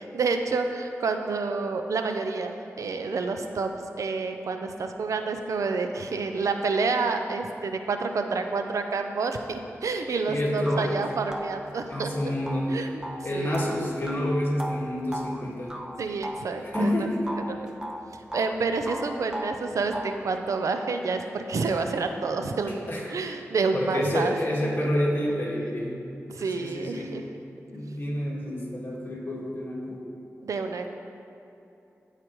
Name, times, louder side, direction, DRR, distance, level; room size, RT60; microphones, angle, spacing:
voice 1, 0.0-3.7 4.0-12.1 12.7-13.0 13.3-13.7 16.0-17.1 17.5-17.7 18.3-24.3 24.8-24.9 26.3-27.2 30.4-30.9, right 4 dB, 85° right, 6 dB, 0.5 m, -29 dB
sound 1, 10.1-10.2 10.7-17.0 17.3-18.6 18.9-20.3, equal, 10° right, 0.6 m, -37 dB
voice 2, 10.3-11.0 11.9-12.9 13.2-15.8 16.6-17.2 22.7-23.1 23.7-26.0 26.5-27.2 27.7-30.0, left 1 dB, 40° left, -4 dB, 1.8 m, -28 dB
14.5 x 4.9 x 3.1 m, 2.8 s
wide cardioid pair, 85°, 5 cm